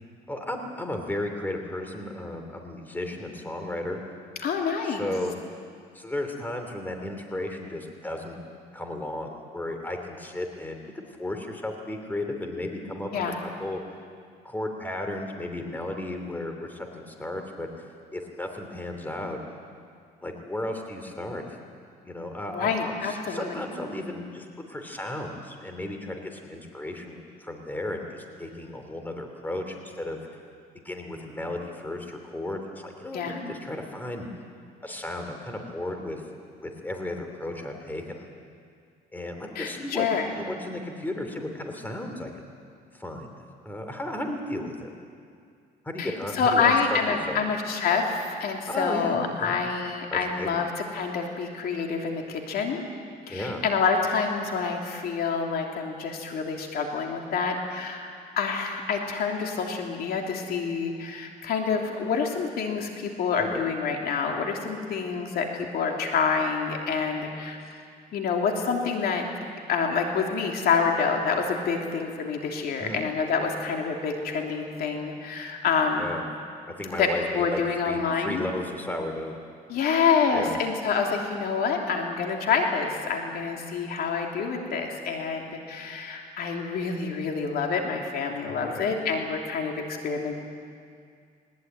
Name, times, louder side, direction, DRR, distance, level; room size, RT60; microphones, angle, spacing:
voice 1, 0.3-4.0 4.9-5.3 5.9-8.4 8.7-13.8 14.4-17.9 18.1-19.4 20.2-21.4 22.1-30.2 30.8-34.3 34.8-36.2 36.6-38.3 39.1-42.3 42.9-43.3 43.6-44.9 45.8-47.0 47.3-47.4 48.7-49.6 50.1-50.6 53.3-53.6 63.4-63.6 72.8-73.0 76.0-76.2 76.6-79.3 80.3-80.6 88.4-88.8, left 1 dB, 10° left, 4 dB, 3.1 m, -34 dB
voice 2, 4.4-5.1 13.1-13.4 22.5-23.6 33.1-33.4 39.5-40.3 46.0-52.8 53.3-58.1 58.4-67.6 68.1-69.2 69.7-76.1 77.0-78.4 79.7-90.3, left 5 dB, 65° left, 2 dB, 3.1 m, -27 dB
20.0 x 20.0 x 9.4 m, 2.2 s
cardioid pair, 110°, 17 cm